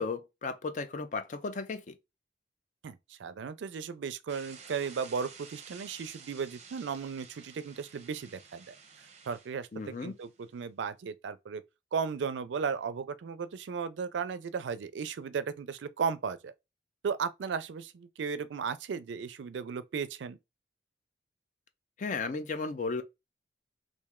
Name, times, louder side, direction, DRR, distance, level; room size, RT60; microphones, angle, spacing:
voice 1, 0.0-1.9 9.7-10.2 22.0-23.0, left 4 dB, 45° left, 0.4 m, -35 dB
voice 2, 2.8-8.7 9.3-11.6 11.9-16.5 17.0-20.4, right 6 dB, 85° right, 0.4 m, -35 dB
sound 1, 4.3-10.6, right 6 dB, 40° right, 0.6 m, -52 dB
3.1 x 2.5 x 3.5 m
head